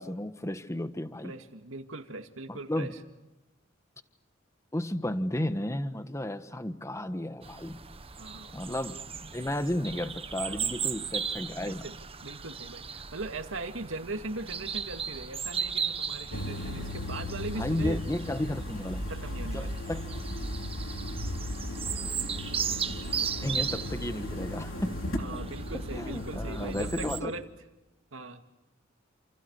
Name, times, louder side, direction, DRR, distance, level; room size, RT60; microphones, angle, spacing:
voice 1, 0.0-1.3 2.5-2.9 4.7-7.8 8.5-9.0 9.3-11.8 17.6-19.1 19.4-20.1 23.4-25.0 25.7-27.3, left 1 dB, 15° left, 10 dB, 1.4 m, -33 dB
voice 2, 1.2-3.0 8.2-8.6 10.4-10.7 11.6-12.0 12.2-18.0 19.1-19.8 25.2-27.4 28.1-28.4, right 2 dB, 80° right, 7 dB, 2.2 m, -40 dB
sound 1, 7.4-27.2, right 6 dB, 30° right, 1.3 m, -37 dB
sound 2, 16.3-27.1, left 1 dB, 85° left, 3.6 m, -36 dB
29.5 x 28.5 x 6.6 m, 1.0 s
head